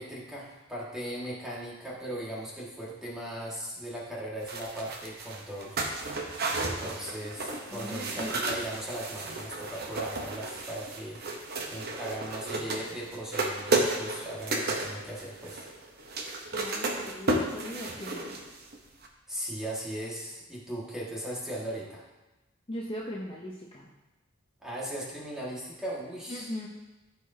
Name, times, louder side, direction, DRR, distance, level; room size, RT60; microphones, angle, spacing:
voice 1, 0.0-5.8 6.6-11.2 11.7-15.6 19.3-22.0 24.6-26.5, right 1 dB, 5° right, -6 dB, 1.8 m, -38 dB
sound 1, 4.5-18.8 19.0-19.1, right 2 dB, 50° right, 0.9 m, -33 dB
voice 2, 7.7-8.3 16.5-18.4 22.7-23.9 26.3-26.7, equal, 25° left, -3 dB, 0.7 m, -39 dB
14.0 x 4.8 x 2.8 m, 1.1 s
head